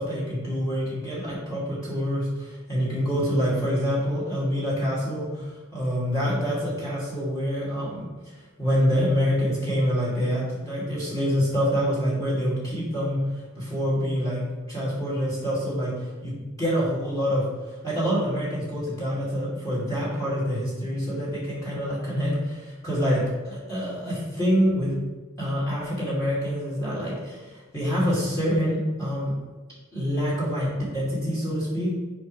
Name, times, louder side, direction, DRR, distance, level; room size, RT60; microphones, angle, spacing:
voice 1, 0.0-8.1 8.6-13.2 13.6-14.4 14.7-15.9 16.2-17.4 17.8-24.9 25.4-29.3 29.9-31.9, equal, 15° left, -8 dB, 2.4 m, -26 dB
10.0 x 5.3 x 3.2 m, 1.3 s
head